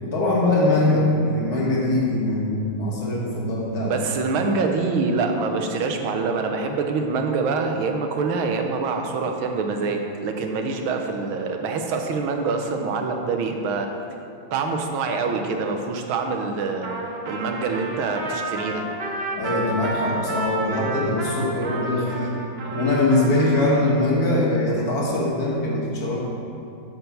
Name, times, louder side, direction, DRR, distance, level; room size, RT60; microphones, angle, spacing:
voice 1, 0.0-3.9 19.4-22.3 22.7-26.2, left 2 dB, 50° left, -4 dB, 1.8 m, -22 dB
voice 2, 3.8-13.9 14.5-17.0 17.3-18.9, right 4 dB, 85° right, 4 dB, 1.6 m, -25 dB
Trumpet, 16.8-23.9, right 2 dB, 65° right, 0.6 m, -31 dB
8.0 x 4.6 x 6.8 m, 2.6 s
omnidirectional pair, 2.3 m